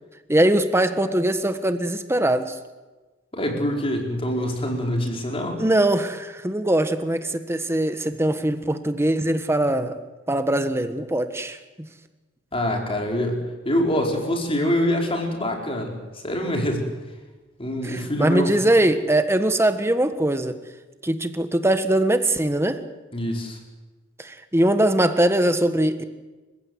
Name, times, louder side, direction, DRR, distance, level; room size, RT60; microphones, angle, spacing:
voice 1, 0.3-2.5 5.6-10.0 10.3-11.6 17.8-20.6 21.0-22.8 24.2-26.0, right 1 dB, 15° right, 9 dB, 1.4 m, -21 dB
voice 2, 3.3-5.6 12.5-16.9 17.6-18.5 23.1-23.6, equal, 30° left, 1 dB, 4.8 m, -25 dB
30.0 x 15.5 x 8.1 m, 1.2 s
head